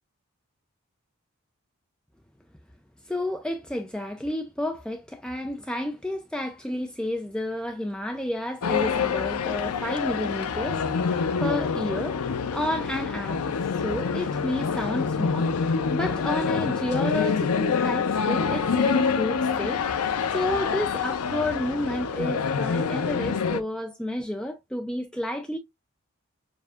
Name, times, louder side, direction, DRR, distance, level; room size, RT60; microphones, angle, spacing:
voice 1, 3.1-13.6 13.8-25.6, left 1 dB, 5° left, 0.3 m, -31 dB
sound 1, 8.6-23.6, left 5 dB, 90° left, 0.5 m, -26 dB
6.8 x 2.6 x 2.4 m
head